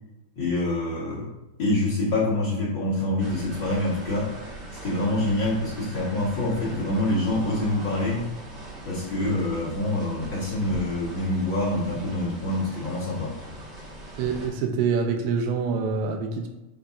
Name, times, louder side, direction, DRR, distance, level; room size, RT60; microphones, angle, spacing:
voice 1, 0.4-1.3 1.6-4.3 4.8-8.2 8.8-13.3, left 1 dB, 65° left, -8 dB, 1.1 m, -26 dB
sound 1, 3.2-14.5, right 1 dB, 50° right, 1.3 m, -40 dB
voice 2, 14.2-16.5, right 5 dB, 90° right, 4 dB, 2.8 m, -26 dB
9.0 x 4.2 x 2.6 m, 0.99 s
omnidirectional pair, 4.6 m